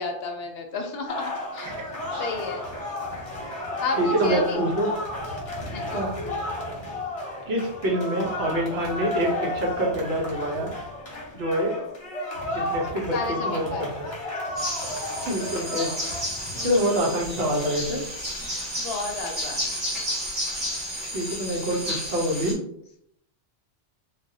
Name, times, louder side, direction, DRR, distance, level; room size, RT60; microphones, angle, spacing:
voice 1, 0.0-1.7 2.2-2.6 3.8-4.6 5.7-6.0 13.1-13.9 16.5-16.9 18.4-19.6, left 3 dB, 65° left, 3 dB, 0.7 m, -32 dB
sound 1, 1.1-17.3, left 1 dB, 35° left, 0.8 m, -32 dB
voice 2, 4.0-4.9 5.9-6.1 7.5-10.7 11.3-11.7 12.5-14.1 15.3-15.9 16.6-18.0 21.0-22.6, right 1 dB, 65° right, -2 dB, 1.0 m, -26 dB
sound 2, 14.6-22.5, equal, 45° right, 1.7 m, -32 dB
3.3 x 2.2 x 2.6 m, 0.69 s
omnidirectional pair, 1.2 m